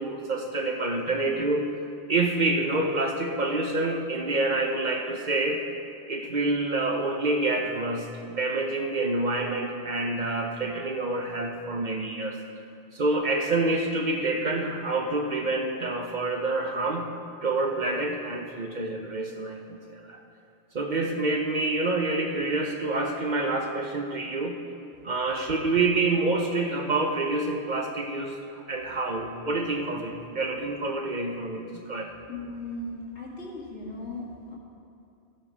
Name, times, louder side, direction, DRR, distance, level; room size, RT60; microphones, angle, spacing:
voice 1, 0.0-1.6 2.1-5.6 6.1-12.4 12.9-17.1 17.4-20.2 20.7-24.6 25.0-32.1, right 2 dB, 45° right, 3 dB, 0.8 m, -27 dB
voice 2, 32.3-34.6, left 2 dB, 80° left, -5 dB, 2.4 m, -37 dB
12.5 x 7.8 x 4.9 m, 2.6 s
omnidirectional pair, 1.1 m